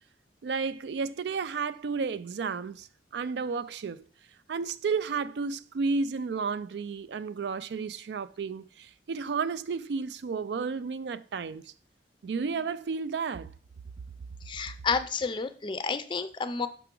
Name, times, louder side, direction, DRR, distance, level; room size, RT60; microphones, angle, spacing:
voice 1, 0.4-2.9 3.1-4.0 4.5-11.6 12.2-13.5, right 5 dB, 70° right, 0.4 m, -32 dB
voice 2, 14.5-16.7, left 5 dB, 25° left, 0.4 m, -30 dB
5.8 x 5.8 x 3.7 m
head